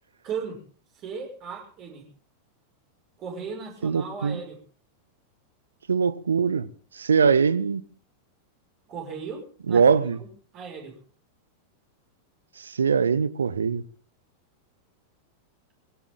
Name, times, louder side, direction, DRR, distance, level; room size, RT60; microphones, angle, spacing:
voice 1, 0.2-0.6 0.9-2.0 3.2-4.6 8.9-9.8 10.2-10.3 10.5-11.0, right 6 dB, 35° right, 6.1 m, -36 dB
voice 2, 3.8-4.4 5.9-6.7 6.9-7.8 9.7-10.2 12.6-13.8, right 6 dB, 70° right, 1.0 m, -22 dB
20.0 x 17.5 x 3.9 m
figure-of-eight pair, 90°, 0 cm